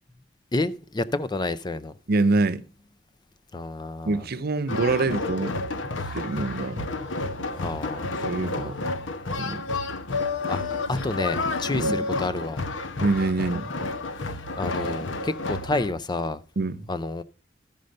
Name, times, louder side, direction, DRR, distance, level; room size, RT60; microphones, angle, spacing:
voice 1, 0.5-1.9 3.5-4.2 7.5-8.7 10.5-12.6 14.6-16.4 16.9-17.2, left 2 dB, 20° left, 0.5 m, -29 dB
voice 2, 2.1-2.7 4.1-5.6 6.1-6.9 8.2-8.8 9.4-9.6 11.7-12.1 13.0-13.7 16.6-16.9, right 3 dB, 55° right, 0.6 m, -25 dB
sound 1, 4.7-15.9, left 3 dB, 75° left, 0.9 m, -30 dB
13.0 x 5.3 x 6.5 m
head